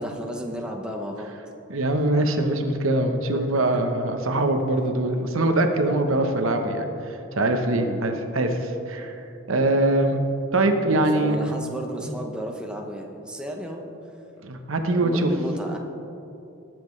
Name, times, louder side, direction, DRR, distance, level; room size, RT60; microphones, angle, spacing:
voice 1, 0.0-1.3 3.5-3.7 7.7-8.1 10.9-13.8 14.9-15.8, equal, 5° right, 1 dB, 0.7 m, -33 dB
voice 2, 1.7-9.2 9.5-10.2 10.5-11.4 14.4-15.3, right 2 dB, 70° right, 5 dB, 0.9 m, -23 dB
19.0 x 7.6 x 3.2 m, 2.8 s
head